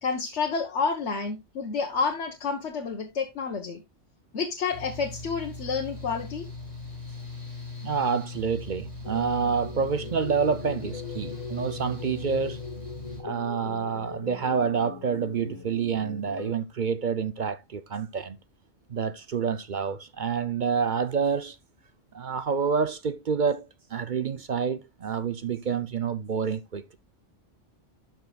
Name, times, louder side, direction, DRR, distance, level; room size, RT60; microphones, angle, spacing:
voice 1, 0.0-3.8 4.3-6.5, left 5 dB, 65° left, 1.4 m, -29 dB
Mechanical fan, 4.7-13.2, left 2 dB, 25° right, 3.5 m, -39 dB
voice 2, 7.8-12.6 13.2-18.4 18.9-21.6 22.1-27.0, right 6 dB, 50° right, 0.6 m, -28 dB
sound 1, 9.0-16.5, left 6 dB, 35° left, 0.9 m, -41 dB
12.0 x 6.3 x 2.3 m
omnidirectional pair, 1.2 m